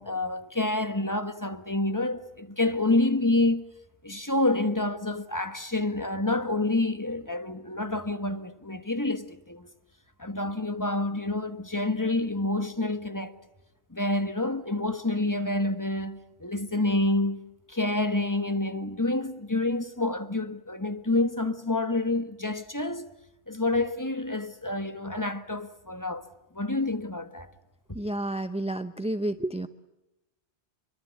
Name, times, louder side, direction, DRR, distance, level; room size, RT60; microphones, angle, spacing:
voice 1, 0.0-3.6 4.0-9.7 10.2-13.3 13.9-17.4 17.7-23.1 23.5-26.2 26.5-27.5, left 2 dB, 15° left, 1.4 m, -28 dB
voice 2, 27.9-29.7, right 1 dB, 5° right, 0.7 m, -30 dB
26.5 x 23.5 x 8.3 m
omnidirectional pair, 1.1 m